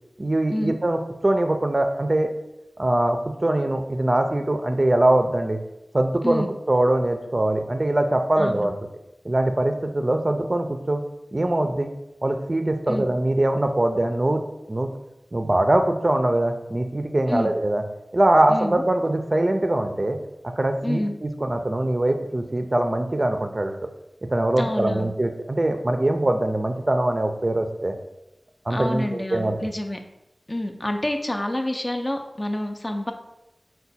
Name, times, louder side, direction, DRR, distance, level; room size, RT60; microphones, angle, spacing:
voice 1, 0.2-2.3 2.8-5.6 5.9-6.4 6.7-8.7 9.2-11.0 11.3-11.9 12.2-14.4 14.7-14.9 15.3-17.8 18.1-20.2 20.6-23.9 24.3-27.9 28.7-29.5, right 1 dB, 40° right, 5 dB, 0.4 m, -22 dB
voice 2, 8.4-8.7 12.9-13.1 17.3-17.5 18.5-18.8 20.8-21.1 24.6-25.1 28.7-30.0 30.5-33.1, left 1 dB, 30° left, 5 dB, 0.4 m, -28 dB
4.6 x 2.2 x 4.0 m, 0.91 s
wide cardioid pair, 60°, 0 cm